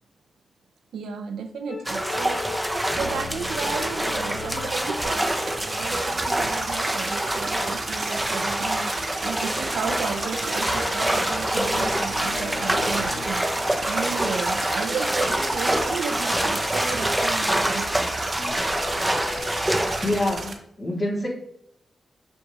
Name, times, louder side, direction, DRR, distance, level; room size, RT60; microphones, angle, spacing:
voice 1, 0.9-2.6 2.9-5.4 5.6-18.3, right 6 dB, 90° right, 8 dB, 0.5 m, -33 dB
sound 1, 1.7-7.4 9.8-15.7 18.4-19.6, left 3 dB, 70° left, 0.8 m, -39 dB
sound 2, 1.9-20.3, right 1 dB, 10° right, 0.7 m, -26 dB
sound 3, 5.0-20.5, right 4 dB, 65° right, 0.9 m, -35 dB
voice 2, 20.0-21.3, left 1 dB, 40° left, -4 dB, 2.5 m, -26 dB
6.1 x 5.2 x 3.0 m, 0.72 s
cardioid pair, 60°, 0 cm